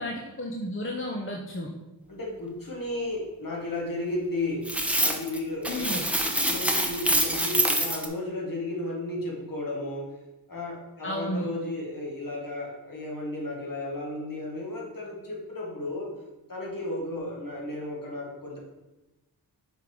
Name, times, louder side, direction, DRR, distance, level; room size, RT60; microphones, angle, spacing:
voice 1, 0.0-1.7 5.7-6.0 11.0-11.5, left 1 dB, 30° left, 0 dB, 0.7 m, -32 dB
voice 2, 2.1-4.7 5.0-10.1 10.5-16.1 16.5-18.6, left 2 dB, 50° left, -2 dB, 2.0 m, -34 dB
sound 1, 4.7-5.4 5.6-8.1, right 1 dB, 5° right, 0.7 m, -25 dB
5.6 x 3.8 x 4.6 m, 1.0 s
cardioid pair, 55°, 41 cm